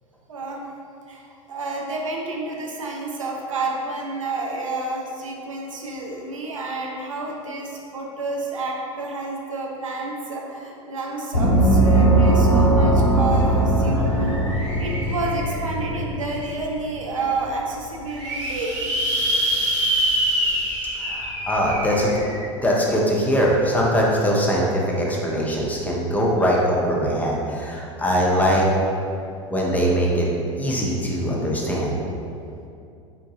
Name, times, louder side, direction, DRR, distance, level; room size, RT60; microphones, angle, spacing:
voice 1, 0.3-0.6 1.1-18.8 21.2-21.4, right 3 dB, 80° right, -1 dB, 0.4 m, -30 dB
Gong, 11.3-16.6, right 1 dB, 85° left, 0.5 m, -19 dB
sound 1, 13.4-13.5 13.8-15.9 16.5-16.6 16.9-17.0 17.2-17.3 17.9-22.4, right 1 dB, 60° right, 1.2 m, -26 dB
voice 2, 21.0-22.2 22.6-28.7 29.5-30.3 30.6-32.0, equal, 10° left, -3 dB, 0.5 m, -21 dB
3.7 x 2.2 x 2.6 m, 2.5 s
figure-of-eight pair, 80°, 17 cm